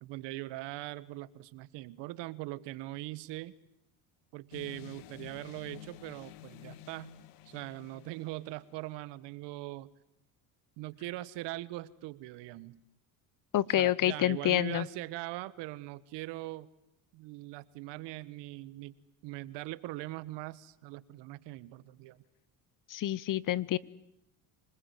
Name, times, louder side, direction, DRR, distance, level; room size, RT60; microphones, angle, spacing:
voice 1, 0.0-3.5 4.3-7.2 7.5-9.9 10.8-12.8 13.7-16.7 17.1-19.0 19.2-22.2, right 18 dB, 70° right, 18 dB, 1.4 m, -41 dB
sound 1, 4.5-8.9, left 13 dB, 80° left, 1.6 m, -51 dB
voice 2, 13.5-14.9 22.9-23.8, left 13 dB, 45° left, 22 dB, 1.0 m, -28 dB
26.5 x 20.0 x 9.5 m, 0.80 s
supercardioid pair, 90°, 44 cm